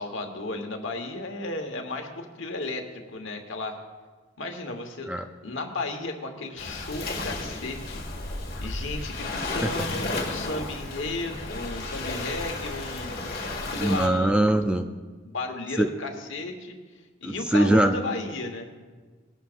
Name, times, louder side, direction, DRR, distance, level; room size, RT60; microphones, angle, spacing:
voice 1, 0.0-3.8 4.4-5.1 5.4-8.3 8.6-13.4 13.7-14.5 15.2-16.8 17.2-18.7, left 2 dB, 65° left, 4 dB, 1.3 m, -34 dB
Waves surf, 6.6-14.1, left 2 dB, 45° left, 1.9 m, -33 dB
voice 2, 13.8-14.9 15.8-15.9 17.2-18.0, right 1 dB, 5° right, 6 dB, 0.4 m, -22 dB
19.0 x 11.5 x 2.6 m, 1.4 s
head